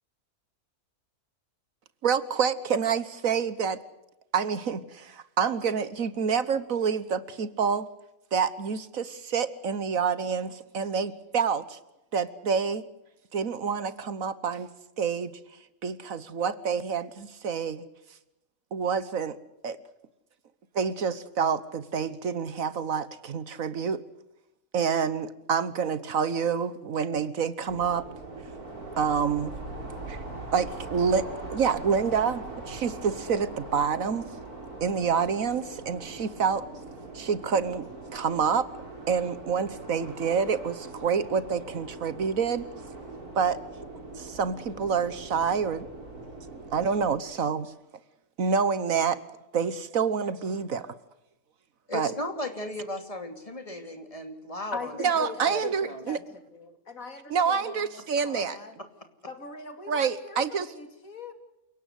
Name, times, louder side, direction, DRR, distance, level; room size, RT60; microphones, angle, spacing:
voice 1, 2.0-3.8 4.3-7.9 8.3-11.8 12.1-12.8 13.3-14.7 15.0-15.3 15.8-17.8 18.7-19.4 19.6-19.8 20.7-24.0 24.7-28.0 29.0-29.5 30.1-30.2 30.5-34.3 34.8-36.7 37.1-37.8 38.1-38.7 39.1-42.7 43.3-43.6 44.1-45.9 46.7-47.7 48.4-49.2 49.5-50.9 51.9-52.1 55.0-56.2 57.3-58.6 59.9-60.7, right 6 dB, 65° right, 15 dB, 1.5 m, -27 dB
sound 1, 27.7-47.2, right 2 dB, 80° right, 5.5 m, -41 dB
voice 2, 51.9-55.0 55.5-55.6 55.9-56.1, left 1 dB, 25° left, 6 dB, 2.8 m, -36 dB
voice 3, 54.7-56.2 56.9-58.8 59.3-61.3, left 4 dB, 65° left, 7 dB, 3.2 m, -40 dB
29.0 x 17.5 x 8.2 m, 0.91 s
omnidirectional pair, 1.6 m